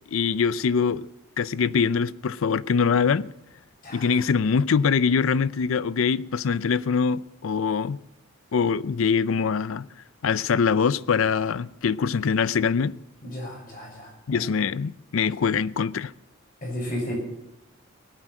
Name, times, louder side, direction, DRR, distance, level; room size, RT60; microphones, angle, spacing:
voice 1, 0.1-1.1 1.4-3.3 3.9-8.0 8.5-9.9 10.2-13.0 14.3-16.1, left 6 dB, 75° left, 0.5 m, -23 dB
voice 2, 3.8-4.2 13.2-14.5 16.6-17.1, equal, 45° left, 6.8 m, -34 dB
19.0 x 9.1 x 7.6 m
head